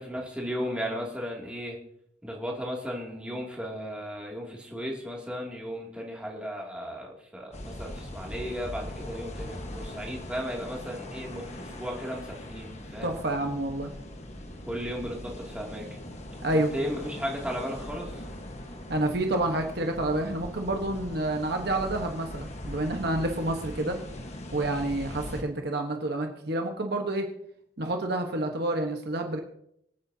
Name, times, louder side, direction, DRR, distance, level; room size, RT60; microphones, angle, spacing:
voice 1, 0.0-1.8 2.2-13.1 14.7-15.9 16.5-18.2, equal, 5° right, -2 dB, 2.6 m, -35 dB
sound 1, 7.5-25.4, left 1 dB, 35° left, 1.4 m, -40 dB
voice 2, 13.0-13.9 16.4-16.7 18.9-24.0 24.5-27.3 27.8-29.4, right 1 dB, 55° right, 3 dB, 1.3 m, -29 dB
25.0 x 8.9 x 2.8 m, 0.73 s
head